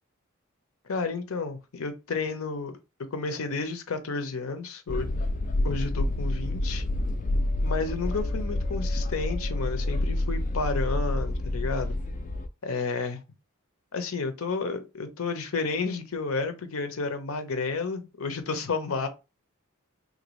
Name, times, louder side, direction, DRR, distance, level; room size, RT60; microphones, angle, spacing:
voice 1, 0.8-2.7 3.1-5.1 5.6-6.8 7.6-12.0 12.6-13.2 13.9-19.1, left 4 dB, 75° left, 0.7 m, -31 dB
sound 1, 4.9-12.5, left 1 dB, 35° left, 0.3 m, -28 dB
3.3 x 2.6 x 3.0 m
head